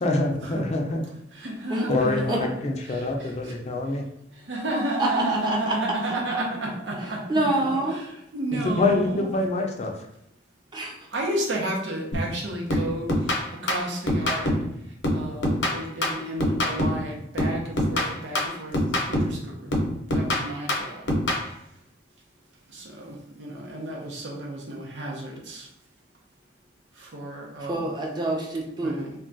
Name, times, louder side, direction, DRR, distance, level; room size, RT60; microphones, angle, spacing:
voice 1, 0.0-1.0 1.9-4.0 8.5-9.9, left 2 dB, 35° left, 1 dB, 0.4 m, -25 dB
voice 2, 1.3-2.3 2.9-3.5 4.5-8.1 8.3-9.3 11.1-13.1 13.6-14.6 15.1-19.7 20.1-21.1 22.7-25.7 27.0-27.9 28.8-29.1, right 1 dB, 80° right, -1 dB, 0.7 m, -32 dB
voice 3, 5.0-5.8 7.0-8.0 10.7-11.1 27.6-29.0, right 2 dB, 25° right, -1 dB, 0.5 m, -27 dB
sound 1, 12.1-12.4 12.7-14.7 15.0-17.1 17.4-19.4 19.7-21.5, left 1 dB, 85° left, 0.7 m, -25 dB
2.3 x 2.2 x 3.8 m, 0.78 s
head